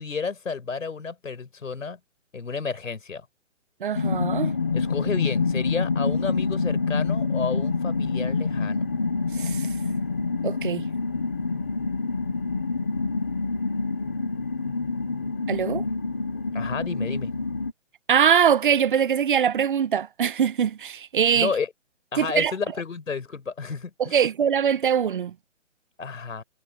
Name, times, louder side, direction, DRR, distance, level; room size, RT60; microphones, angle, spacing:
voice 1, 0.0-2.0 2.3-3.2 4.7-8.8 16.5-17.3 21.3-21.7 22.1-24.2 26.0-26.4, left 5 dB, 85° left, 4.7 m, -31 dB
voice 2, 3.8-4.5 9.3-9.7 10.4-10.9 15.5-15.8 18.1-21.5 22.2-22.5 24.0-25.3, right 8 dB, 40° right, 0.9 m, -22 dB
sound 1, 3.9-17.7, left 4 dB, 10° left, 0.5 m, -27 dB
hypercardioid pair, 160°, 38 cm